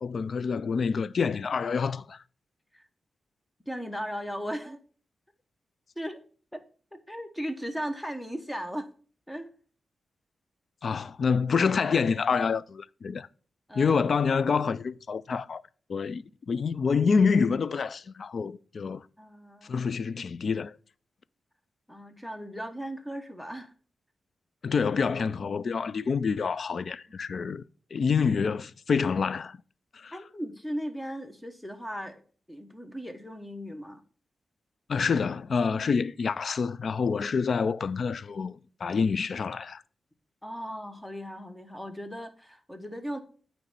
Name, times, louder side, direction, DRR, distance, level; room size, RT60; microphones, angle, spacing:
voice 1, 0.0-2.2 10.8-13.3 13.7-15.6 15.9-19.0 19.6-20.8 24.6-27.6 27.9-29.6 29.9-30.1 34.9-39.8, left 5 dB, 55° left, 0.3 m, -27 dB
voice 2, 3.7-4.8 6.0-6.2 6.5-6.6 6.9-8.9 9.3-9.5 13.7-14.0 19.2-19.8 21.9-23.7 30.1-32.2 32.5-34.0 40.4-43.2, equal, 5° left, 1.0 m, -37 dB
9.0 x 3.1 x 6.6 m
wide cardioid pair, 100°, 0 cm